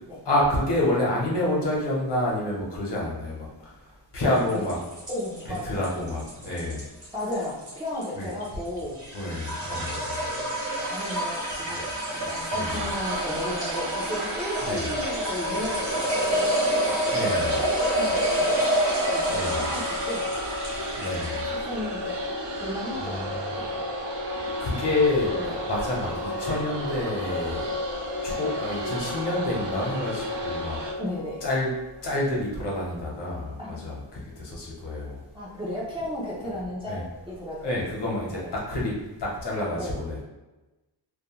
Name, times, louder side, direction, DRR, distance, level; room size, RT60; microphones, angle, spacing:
voice 1, 0.2-3.7 4.1-4.8 5.6-6.8 8.2-8.3 9.1-10.2 12.2-12.8 14.6-14.9 17.1-17.6 19.3-19.6 21.0-21.4 23.0-23.6 24.6-25.3 25.6-27.6 28.2-30.8 31.4-31.7 32.0-35.2 36.9-37.0 37.6-38.4 38.7-38.9 39.2-40.2, left 1 dB, 70° left, -4 dB, 0.9 m, -28 dB
sound 1, 4.3-21.5, right 1 dB, 40° right, 1.0 m, -28 dB
voice 2, 5.1-5.8 7.1-9.0 10.8-16.6 17.1-18.6 19.1-20.3 21.4-22.2 22.6-23.8 25.4-25.5 31.0-31.4 33.6-33.8 35.3-37.8 38.2-38.5 39.8-40.0, left 1 dB, 15° right, -8 dB, 0.4 m, -35 dB
sound 2, 12.6-30.9, right 2 dB, 75° right, 0.6 m, -36 dB
sound 3, 14.8-32.6, left 3 dB, 45° left, 0.5 m, -34 dB
2.4 x 2.1 x 2.9 m, 1.1 s
wide cardioid pair, 165°, 43 cm